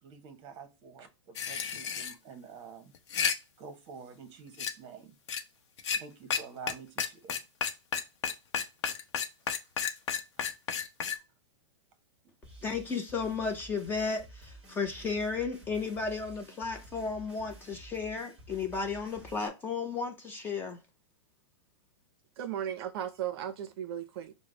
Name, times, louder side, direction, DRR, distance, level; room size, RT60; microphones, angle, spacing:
voice 1, 0.0-2.9 3.6-5.1 5.9-7.4 9.6-9.7 12.2-12.3, right 5 dB, 35° right, 0.9 m, -48 dB
sound 1, 1.4-2.1 2.9-3.4 4.6-4.7 5.3-5.4 5.8-6.0 6.3-6.4 6.7-6.8 7.0-11.2, left 7 dB, 65° left, 0.7 m, -31 dB
sound 2, 12.4-19.5, right 1 dB, 5° right, 1.3 m, -52 dB
voice 2, 12.6-20.8, left 5 dB, 15° left, 0.5 m, -34 dB
voice 3, 22.4-24.3, right 10 dB, 50° right, 0.5 m, -36 dB
5.0 x 2.0 x 3.8 m
hypercardioid pair, 150°, 16 cm